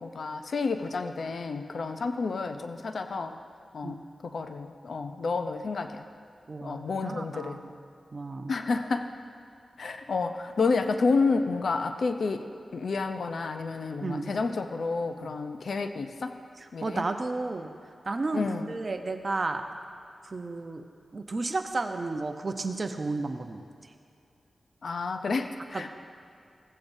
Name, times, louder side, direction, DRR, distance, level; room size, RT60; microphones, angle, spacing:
voice 1, 0.0-3.4 3.7-6.0 6.6-7.6 8.5-9.1 9.8-12.5 12.7-16.3 16.7-17.1 18.3-18.7 24.8-25.9, left 4 dB, 75° left, 7 dB, 0.5 m, -30 dB
voice 2, 6.5-7.8 8.1-8.5 14.0-14.3 15.2-15.3 16.8-17.7 18.1-19.6 20.2-20.8 21.1-23.6 25.7-25.9, right 3 dB, 50° right, 6 dB, 0.7 m, -32 dB
15.5 x 8.5 x 2.7 m, 2.5 s
cardioid pair, 50°, 0 cm